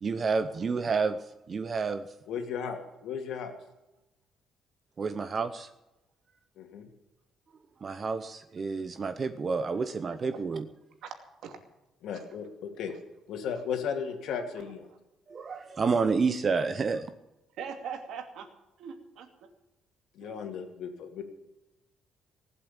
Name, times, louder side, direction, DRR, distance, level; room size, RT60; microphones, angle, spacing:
voice 1, 0.0-2.1 5.0-5.7 7.8-10.7 15.3-17.1, right 4 dB, 30° right, 10 dB, 0.7 m, -29 dB
voice 2, 2.3-3.5 6.6-6.9 12.0-12.9 13.3-14.9 20.1-21.2, left 7 dB, 65° left, 5 dB, 2.6 m, -35 dB
voice 3, 17.5-18.5 18.8-19.3 20.2-20.5, right 7 dB, 70° right, 5 dB, 2.5 m, -40 dB
18.5 x 8.1 x 8.7 m, 0.95 s
cardioid pair, 155°, 0 cm